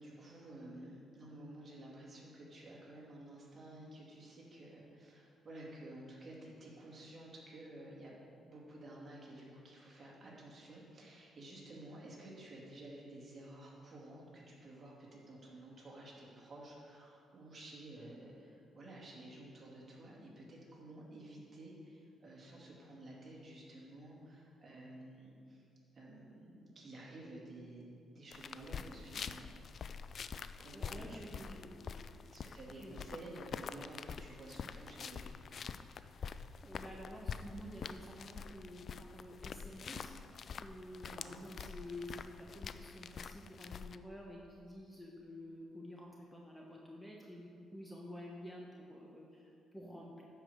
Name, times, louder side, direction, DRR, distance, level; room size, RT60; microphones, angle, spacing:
voice 1, 0.0-25.6 25.9-29.5 30.6-31.5 32.3-35.4 41.0-41.4, right 1 dB, 40° right, -4 dB, 2.5 m, -52 dB
sound 1, 28.3-44.0, left 6 dB, 50° left, 0.3 m, -46 dB
voice 2, 30.7-32.3 32.7-33.0 36.6-40.1 40.6-50.2, equal, 5° left, -2 dB, 1.1 m, -50 dB
9.8 x 4.9 x 6.5 m, 2.5 s
cardioid pair, 90°, 0 cm